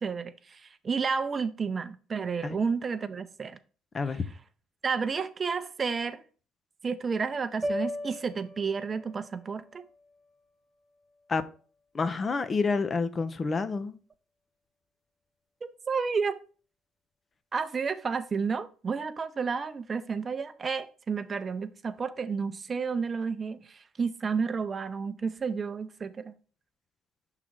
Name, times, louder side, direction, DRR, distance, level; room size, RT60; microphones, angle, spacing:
voice 1, 0.0-3.6 4.8-6.2 6.8-9.9 15.6-16.4 17.5-26.3, right 5 dB, 35° right, 0.6 m, -31 dB
sound 1, 7.6-11.9, left 1 dB, 10° right, 1.1 m, -39 dB
voice 2, 11.9-14.0, left 4 dB, 35° left, 0.6 m, -28 dB
6.0 x 3.8 x 4.4 m
supercardioid pair, 75°, 0 cm